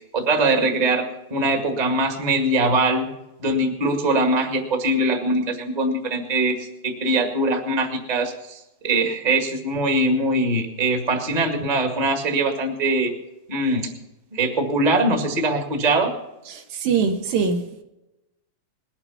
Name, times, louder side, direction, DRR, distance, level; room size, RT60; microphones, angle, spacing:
voice 1, 0.1-1.0 1.3-3.1 3.4-13.1 13.5-13.9 14.3-16.1, right 2 dB, 20° right, 1.2 m, -22 dB
voice 2, 16.5-17.8, right 5 dB, 80° right, 3.2 m, -23 dB
20.5 x 8.8 x 5.7 m
omnidirectional pair, 4.1 m